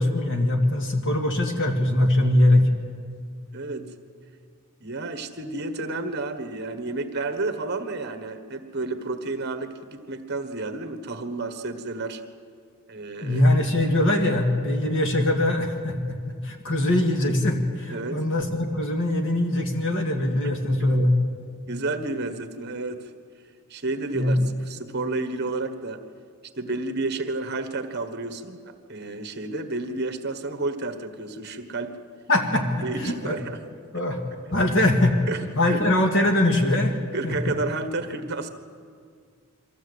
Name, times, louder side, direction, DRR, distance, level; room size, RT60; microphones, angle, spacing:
voice 1, 0.0-2.7 13.2-16.0 16.3-21.1 24.1-24.4 32.3-33.4 33.9-34.2 34.5-35.2 35.6-37.0 37.2-37.5, left 1 dB, 60° left, 3 dB, 2.1 m, -22 dB
voice 2, 3.5-3.9 4.8-12.2 12.9-13.4 17.9-18.3 21.7-23.1 23.7-26.1 26.5-32.0 32.8-33.6 35.3-35.8 37.1-38.5, right 2 dB, 50° right, 9 dB, 1.5 m, -31 dB
24.0 x 15.0 x 8.2 m, 2.1 s
head